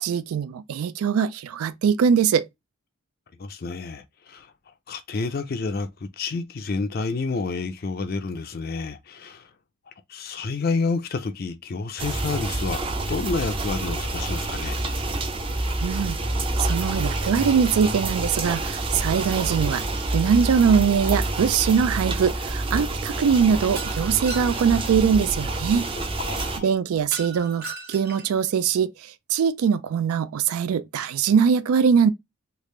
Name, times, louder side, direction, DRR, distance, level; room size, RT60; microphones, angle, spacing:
voice 1, 0.0-2.5 15.8-16.2 16.6-25.9 26.6-32.1, right 7 dB, 85° right, 0.3 m, -22 dB
voice 2, 3.4-4.5 4.9-5.9 6.2-9.5 10.1-14.8 26.0-26.7, left 4 dB, 45° left, 0.4 m, -29 dB
sound 1, 12.0-26.6, right 2 dB, 25° right, 0.4 m, -27 dB
Shatter, 23.8-24.9 27.1-28.4, right 3 dB, 45° right, 0.9 m, -37 dB
3.4 x 2.4 x 3.1 m
head